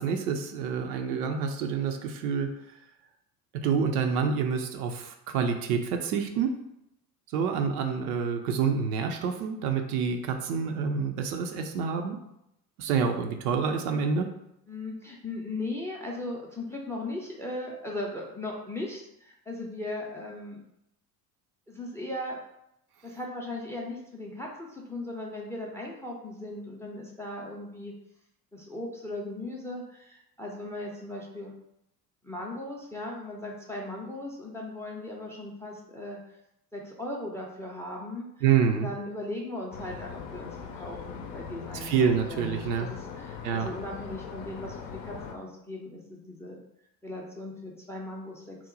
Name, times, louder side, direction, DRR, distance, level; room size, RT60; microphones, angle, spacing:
voice 1, 0.0-2.5 3.5-6.5 7.3-12.2 12.8-14.3 38.4-38.9 41.8-42.9 43.4-43.7, right 6 dB, 65° right, 5 dB, 0.5 m, -27 dB
voice 2, 14.7-20.6 21.7-22.4 23.0-27.9 28.5-31.5 32.2-36.2 36.7-38.3 38.8-46.6 47.0-48.6, left 2 dB, 5° left, -1 dB, 0.5 m, -38 dB
sound 1, 39.7-45.3, left 6 dB, 60° left, 0.6 m, -41 dB
2.9 x 2.1 x 3.8 m, 0.81 s
figure-of-eight pair, 60°, 50 cm